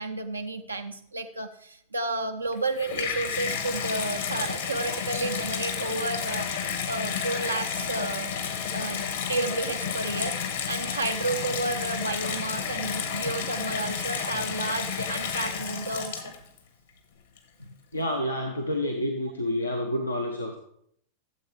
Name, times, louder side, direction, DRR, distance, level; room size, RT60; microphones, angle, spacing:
voice 1, 0.0-8.3 8.7-10.4 10.7-16.2 17.6-17.7, right 2 dB, 80° right, 5 dB, 0.5 m, -31 dB
Water tap faucet / Bathtub (filling or washing), 2.5-16.6 17.4-17.5, left 7 dB, 65° left, 1.6 m, -31 dB
voice 2, 17.9-20.6, left 1 dB, 85° left, 2 dB, 0.9 m, -29 dB
13.5 x 7.7 x 3.3 m, 0.70 s
figure-of-eight pair, 90°, 0 cm